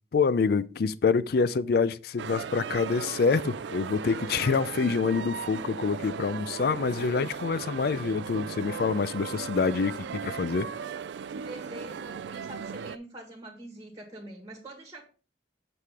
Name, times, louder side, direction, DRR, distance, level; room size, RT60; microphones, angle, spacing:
voice 1, 0.1-10.7, left 5 dB, 60° left, 0.4 m, -26 dB
sound 1, 2.2-13.0, right 6 dB, 80° right, 0.4 m, -37 dB
voice 2, 11.4-15.0, right 1 dB, 20° right, 1.5 m, -44 dB
7.7 x 4.9 x 3.5 m
head